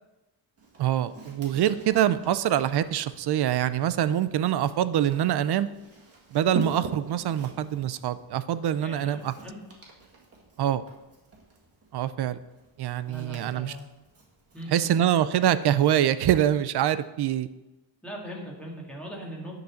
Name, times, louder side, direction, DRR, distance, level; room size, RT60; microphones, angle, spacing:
Walk footsteps, 0.6-15.6, right 3 dB, 30° right, 1.8 m, -44 dB
voice 1, 0.8-5.7 6.3-9.3 10.6-10.8 11.9-12.4 12.8-13.8 14.7-17.5, right 11 dB, 60° right, 14 dB, 0.5 m, -25 dB
voice 2, 8.8-9.6 13.1-13.9 14.5-14.9 18.0-19.6, right 1 dB, 5° left, -3 dB, 1.8 m, -39 dB
10.0 x 4.0 x 7.0 m, 1.0 s
wide cardioid pair, 165°, 45 cm